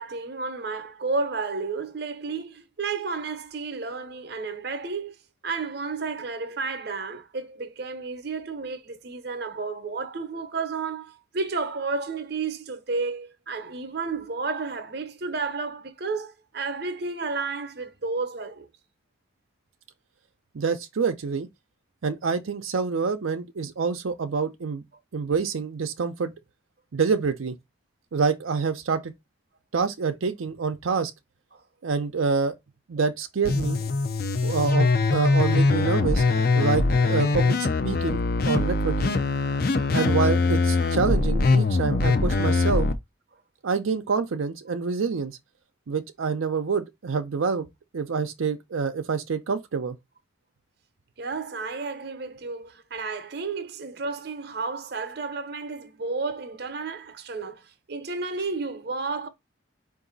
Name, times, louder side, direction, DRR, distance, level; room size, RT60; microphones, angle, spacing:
voice 1, 0.0-5.2 5.4-18.7 31.5-31.6 51.2-59.3, right 4 dB, 55° right, 0.7 m, -32 dB
voice 2, 20.5-21.5 22.0-24.8 25.1-26.3 26.9-27.5 28.1-29.1 29.7-31.1 31.8-32.6 32.9-33.8 34.4-36.2 36.5-39.2 39.9-42.9 43.6-45.4 45.9-47.7 47.9-50.0, right 5 dB, 90° right, 0.5 m, -27 dB
sound 1, 33.4-42.9, left 3 dB, 50° left, 0.5 m, -22 dB
4.7 x 2.6 x 3.9 m
head